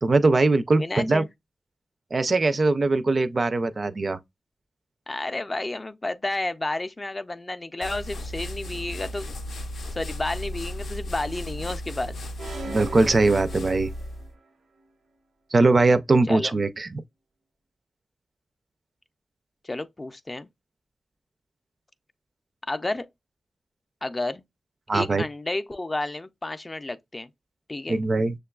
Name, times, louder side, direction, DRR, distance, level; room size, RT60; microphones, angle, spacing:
voice 1, 0.0-1.2 2.1-4.2 12.6-13.9 15.5-16.9 24.9-25.2 27.9-28.3, right 3 dB, 45° right, 0.3 m, -21 dB
voice 2, 0.8-1.3 5.1-9.3 9.9-12.1 16.3-16.5 19.6-20.5 22.7-23.1 24.0-24.4 24.9-27.3 27.7-28.0, left 2 dB, 30° left, 0.4 m, -31 dB
sound 1, 7.8-14.3, left 1 dB, 90° left, 0.5 m, -35 dB
sound 2, 12.4-14.4, right 2 dB, 85° right, 0.6 m, -39 dB
6.4 x 2.3 x 2.3 m
wide cardioid pair, 75°, 0 cm